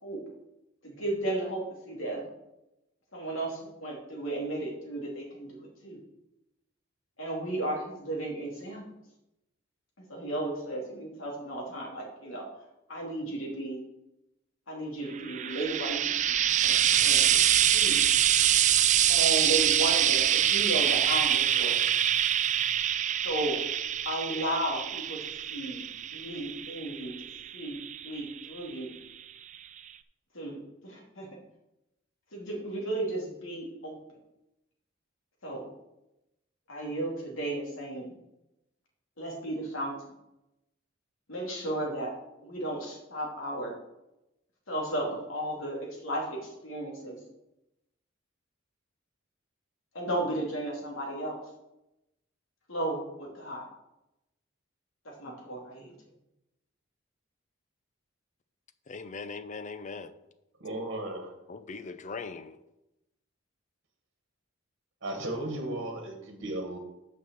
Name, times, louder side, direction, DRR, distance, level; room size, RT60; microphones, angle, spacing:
voice 1, 0.8-2.2 3.1-6.0 7.2-8.8 10.1-12.5 12.9-13.8 14.7-17.4 17.7-18.0 19.1-21.8 23.2-23.6 24.1-25.2 25.5-25.8 26.1-27.1 27.5-28.9 30.3-30.6 30.8-31.3 32.3-34.0 35.4-35.6 36.7-38.1 39.2-39.9 41.3-42.1 42.4-43.7 44.7-47.2 49.9-51.4 52.7-53.6 55.2-55.9, right 1 dB, 75° left, 2.6 m, -34 dB
Frying (food), 15.2-28.6 29.5-29.6, right 10 dB, 35° right, 0.3 m, -25 dB
voice 2, 58.9-60.1 61.5-62.6, left 4 dB, 35° left, 0.5 m, -40 dB
voice 3, 60.6-61.3 65.0-66.8, right 1 dB, 60° right, 1.4 m, -35 dB
6.4 x 5.4 x 6.8 m
head